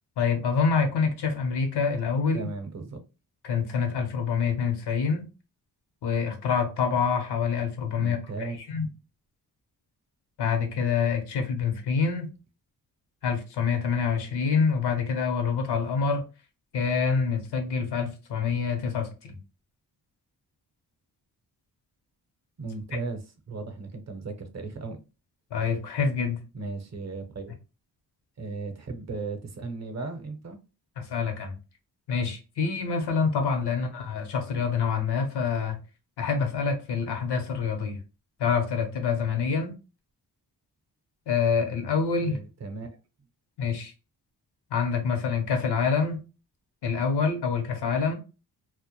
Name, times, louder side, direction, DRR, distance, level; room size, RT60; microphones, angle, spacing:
voice 1, 0.2-2.5 3.4-5.3 6.0-8.9 10.4-12.3 13.2-16.2 16.7-19.4 22.9-23.0 25.5-26.4 31.0-31.5 32.1-35.8 36.2-38.0 38.4-39.7 41.3-42.4 43.6-43.9 44.7-46.2 46.8-48.1, left 5 dB, 85° left, 0.7 m, -26 dB
voice 2, 2.3-3.0 8.0-8.6 22.6-25.0 26.5-27.5 28.4-30.6 42.2-42.9, right 3 dB, 45° right, 0.6 m, -36 dB
2.1 x 2.1 x 2.9 m
cardioid pair, 70°, 39 cm